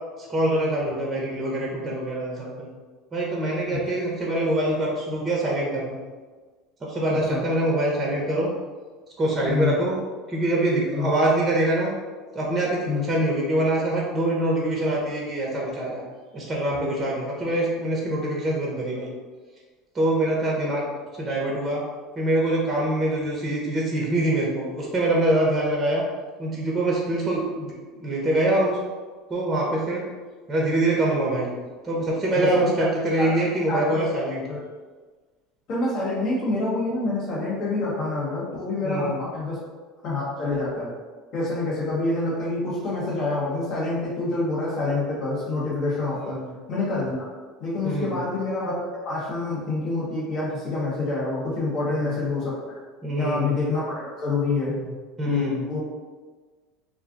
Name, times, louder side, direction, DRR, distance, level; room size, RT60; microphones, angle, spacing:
voice 1, 0.3-2.7 3.1-6.0 6.8-8.5 9.2-10.0 10.3-11.9 12.3-16.0 16.3-19.1 19.9-20.8 21.2-21.8 22.2-26.0 26.4-27.7 28.0-28.8 29.3-30.0 30.5-31.5 31.8-34.4 38.8-39.2 46.2-46.5 47.8-48.2 51.9-52.0 53.0-53.5 54.7-54.9 55.2-55.6, right 1 dB, 20° right, -3 dB, 0.7 m, -24 dB
voice 2, 7.1-7.4 9.5-9.7 10.9-11.1 12.9-13.1 32.3-32.9 33.2-34.0 34.5-34.6 35.7-39.6 40.0-40.9 41.3-46.4 46.7-47.3 47.6-52.8 53.2-54.8 55.2-55.8, left 3 dB, 55° left, -6 dB, 1.4 m, -27 dB
2.5 x 2.2 x 3.9 m, 1.4 s
supercardioid pair, 125°, 0 cm